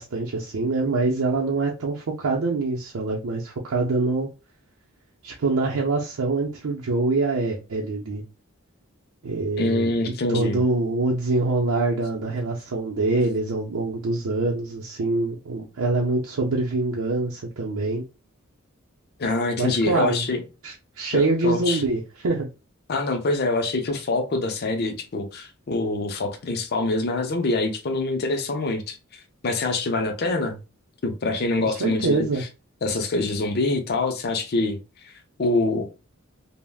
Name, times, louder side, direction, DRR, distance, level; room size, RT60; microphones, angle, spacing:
voice 1, 0.0-4.3 5.2-8.2 9.2-18.0 19.6-20.2 20.6-22.5 31.6-32.4, right 3 dB, 80° right, 0.5 m, -25 dB
voice 2, 9.6-10.6 19.2-20.4 21.1-21.8 22.9-30.6 31.0-32.5 32.8-34.8 35.0-35.1 35.4-35.9, left 2 dB, 50° left, 0.5 m, -25 dB
3.4 x 2.0 x 2.3 m
head